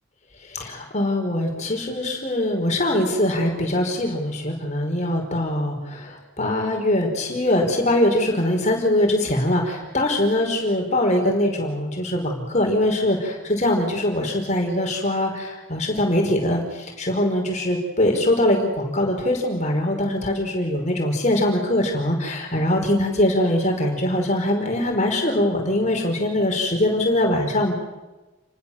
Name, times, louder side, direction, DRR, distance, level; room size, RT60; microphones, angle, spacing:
voice 1, 0.4-27.7, left 1 dB, 35° left, 2 dB, 5.3 m, -22 dB
29.5 x 19.5 x 7.4 m, 1.1 s
head